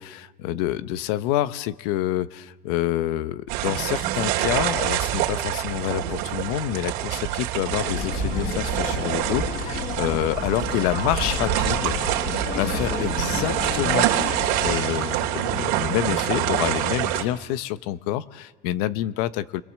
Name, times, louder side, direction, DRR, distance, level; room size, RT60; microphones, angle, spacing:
voice 1, 0.0-12.0 12.6-14.1 14.6-19.6, left 13 dB, 85° left, 14 dB, 0.9 m, -27 dB
sound 1, 3.5-17.2, right 13 dB, 85° right, 2.9 m, -26 dB
sound 2, 7.7-14.8, left 9 dB, 40° left, 1.0 m, -32 dB
29.0 x 22.0 x 7.5 m, 1.2 s
cardioid pair, 150°, 19 cm